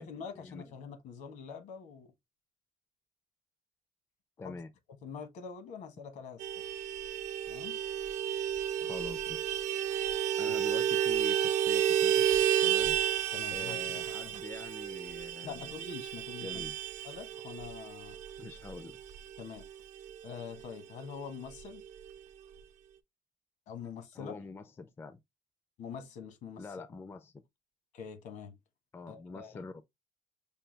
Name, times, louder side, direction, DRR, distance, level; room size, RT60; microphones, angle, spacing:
voice 1, 0.0-2.1 4.4-4.6 5.0-6.5 7.5-7.8 10.4-10.6 13.3-14.4 15.4-16.7 17.0-18.2 19.4-19.6 20.2-21.8 23.7-24.4 25.8-26.6 27.9-28.5 29.1-29.6, left 6 dB, 75° left, 1.2 m, -45 dB
voice 2, 4.4-4.7 8.8-9.6 10.4-12.3 12.6-13.0 13.5-15.7 16.4-16.8 18.4-19.0 24.1-25.2 26.6-27.3 28.9-29.8, left 3 dB, 20° left, 0.4 m, -45 dB
Vehicle horn car horn honking, 6.4-20.3 20.6-20.7 21.0-21.2 21.4-22.1, right 10 dB, 75° right, 0.6 m, -31 dB
5.6 x 2.2 x 3.2 m
cardioid pair, 155°, 13 cm